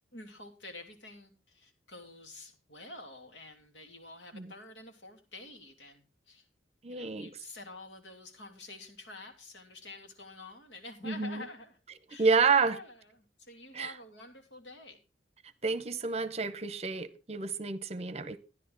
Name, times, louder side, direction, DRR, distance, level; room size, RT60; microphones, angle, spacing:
voice 1, 0.1-6.4 6.9-11.8 12.1-12.3 12.6-15.0, left 2 dB, 75° left, 2.7 m, -49 dB
voice 2, 6.8-7.3 11.0-11.4 12.2-12.8 13.7-13.9 15.6-18.4, right 4 dB, 35° right, 0.8 m, -29 dB
13.5 x 11.0 x 3.8 m
head